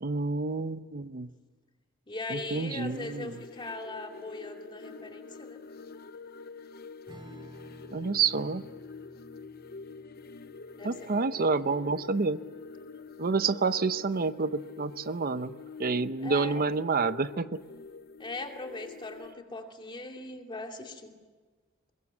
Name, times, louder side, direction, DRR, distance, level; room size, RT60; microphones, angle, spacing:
voice 1, 0.0-1.3 2.3-3.3 7.9-8.6 10.8-12.4 13.2-15.5 15.8-17.6, right 4 dB, 45° right, 13 dB, 0.7 m, -28 dB
voice 2, 2.1-5.6 10.8-11.6 13.7-13.8 16.2-16.6 18.2-21.1, left 2 dB, 25° left, 3 dB, 2.5 m, -40 dB
sound 1, 2.4-19.3, left 4 dB, 50° left, 0.7 m, -46 dB
Strum, 7.1-13.9, right 1 dB, 25° right, 2.2 m, -54 dB
23.0 x 21.5 x 7.8 m, 1.4 s
head